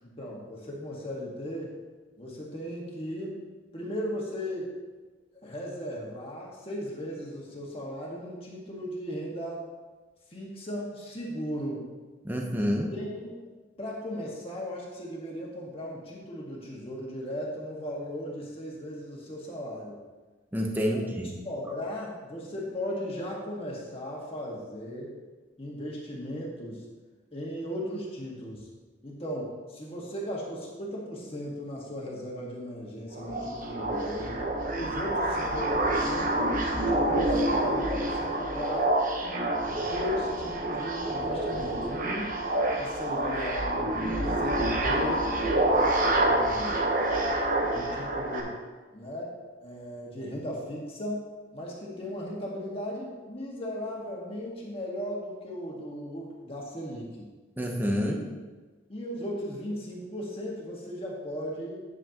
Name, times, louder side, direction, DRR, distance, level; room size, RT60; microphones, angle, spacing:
voice 1, 0.0-1.7 2.2-3.4 3.7-4.7 5.4-9.6 10.3-11.9 12.9-13.4 13.8-20.0 20.9-21.1 21.4-25.1 25.6-26.8 27.3-28.7 29.0-34.4 34.7-38.9 39.9-42.3 42.8-45.2 45.6-46.8 47.7-48.6 48.9-49.3 49.6-51.3 51.5-57.3 58.0-58.2 58.9-61.8, equal, 30° left, -3 dB, 1.7 m, -37 dB
voice 2, 12.2-12.9 20.5-21.3 57.6-58.2, equal, 10° right, 0 dB, 0.8 m, -28 dB
sound 1, 33.1-48.4, right 1 dB, 45° right, 1.1 m, -27 dB
9.5 x 8.1 x 3.0 m, 1.3 s
head